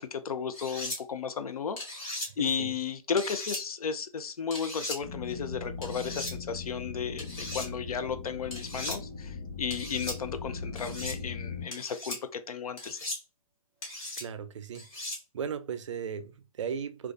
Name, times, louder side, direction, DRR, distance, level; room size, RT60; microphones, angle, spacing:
voice 1, 0.0-13.1, left 6 dB, 85° left, 0.5 m, -34 dB
sound 1, 0.5-1.0 1.8-2.3 3.2-3.6 4.5-5.0 5.8-6.3 7.2-7.7 8.5-9.0 9.7-10.2 10.8-11.2 11.7-12.2 12.8-13.2 13.8-14.2 14.7-15.2, left 1 dB, 15° left, 0.4 m, -37 dB
voice 2, 2.4-2.7 14.2-15.0 15.3-17.1, right 7 dB, 55° right, 0.4 m, -37 dB
sound 2, 5.0-11.7, left 4 dB, 65° left, 1.2 m, -39 dB
2.4 x 2.3 x 2.3 m
hypercardioid pair, 160°, 18 cm